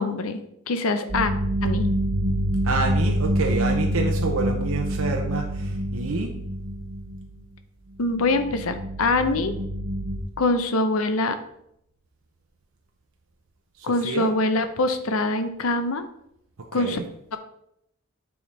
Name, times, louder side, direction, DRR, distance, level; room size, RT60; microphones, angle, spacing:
voice 1, 0.0-1.3 1.6-1.9 8.0-9.5 10.4-11.4 13.8-16.1 16.7-17.0 17.3-17.4, left 2 dB, 90° left, 9 dB, 0.7 m, -24 dB
sound 1, 1.1-7.4 8.0-10.2, equal, 35° right, 0.8 m, -26 dB
voice 2, 2.6-6.3 13.8-14.3 16.7-17.0, right 3 dB, 85° right, 2 dB, 0.7 m, -28 dB
8.5 x 3.6 x 4.2 m, 0.76 s
head